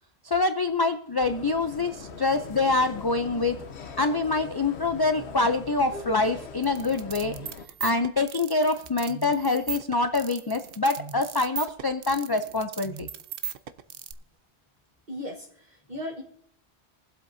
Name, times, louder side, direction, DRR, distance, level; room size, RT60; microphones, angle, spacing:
voice 1, 0.2-3.6 4.0-7.3 7.8-13.1, left 3 dB, 40° left, 7 dB, 0.3 m, -25 dB
sound 1, 1.2-7.7, left 5 dB, 85° left, 1.1 m, -41 dB
sound 2, 6.6-14.1, right 8 dB, 65° right, 0.8 m, -37 dB
voice 2, 15.1-16.2, left 1 dB, 45° right, 0 dB, 1.3 m, -37 dB
23.0 x 7.9 x 2.6 m, 0.66 s
omnidirectional pair, 1.1 m